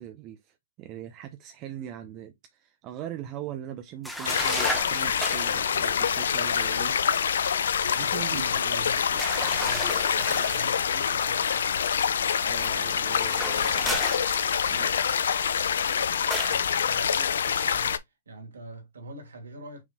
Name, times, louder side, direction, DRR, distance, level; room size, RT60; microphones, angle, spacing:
voice 1, 0.0-6.9 8.0-9.2 12.4-14.1 14.7-14.9, right 11 dB, 35° right, 0.6 m, -41 dB
sound 1, 4.0-5.7 9.2-10.7 13.1-14.8 16.3-16.7, equal, ahead, 1.1 m, -34 dB
sound 2, 4.2-18.0, left 7 dB, 75° left, 0.5 m, -26 dB
voice 2, 6.9-7.3 7.8-9.0 9.3-12.0 16.5-19.8, right 2 dB, 85° right, 2.1 m, -44 dB
6.1 x 3.6 x 2.2 m
hypercardioid pair, 130°, 0 cm